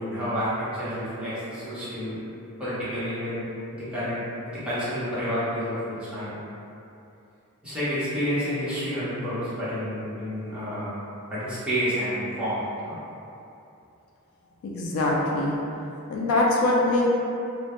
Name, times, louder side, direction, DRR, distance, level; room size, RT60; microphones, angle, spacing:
voice 1, 0.0-2.2 2.6-3.4 3.7-5.8 6.1-6.4 7.6-11.0 11.3-13.0, equal, 5° right, -13 dB, 0.7 m, -29 dB
voice 2, 14.6-15.6 16.1-17.1, left 2 dB, 65° left, -3 dB, 0.3 m, -23 dB
2.1 x 2.0 x 2.9 m, 2.7 s
head